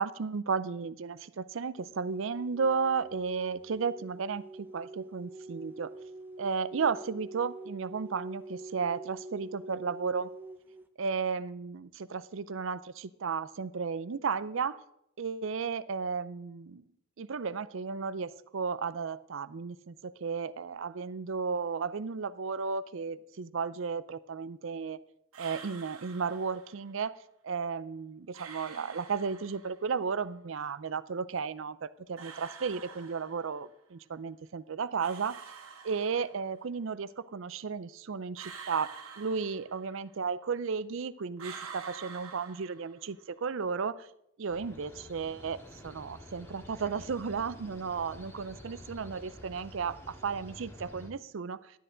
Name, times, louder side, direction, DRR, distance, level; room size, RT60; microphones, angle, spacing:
voice 1, 0.0-5.9 6.4-10.3 11.0-14.8 15.2-16.8 17.2-25.0 25.4-27.2 27.4-35.4 35.8-44.1 44.4-45.6 45.8-51.7, right 5 dB, 60° right, 16 dB, 0.5 m, -34 dB
sound 1, 1.8-10.8, right 2 dB, 10° right, 0.7 m, -46 dB
sound 2, 25.3-26.8 28.3-29.8 32.2-33.7 35.0-36.5 38.4-40.1 41.4-43.2, right 6 dB, 80° right, 1.7 m, -47 dB
sound 3, 44.5-51.1, left 1 dB, 10° left, 2.0 m, -49 dB
12.0 x 10.0 x 3.9 m, 0.78 s
head